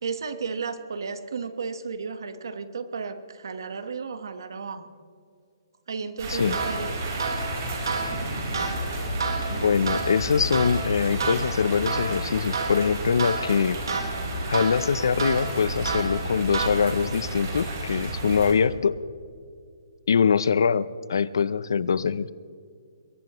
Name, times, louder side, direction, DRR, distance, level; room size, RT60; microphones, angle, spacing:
voice 1, 0.0-4.9 5.9-7.0, right 5 dB, 65° right, 11 dB, 1.2 m, -33 dB
sound 1, 6.2-18.5, right 1 dB, 40° right, 4.6 m, -32 dB
sound 2, 6.5-17.1, right 4 dB, 90° right, 3.8 m, -32 dB
voice 2, 9.5-13.8 14.5-19.0 20.1-22.3, left 6 dB, 65° left, 18 dB, 0.6 m, -23 dB
22.0 x 18.5 x 3.0 m, 2.3 s
hypercardioid pair, 180°, 2 cm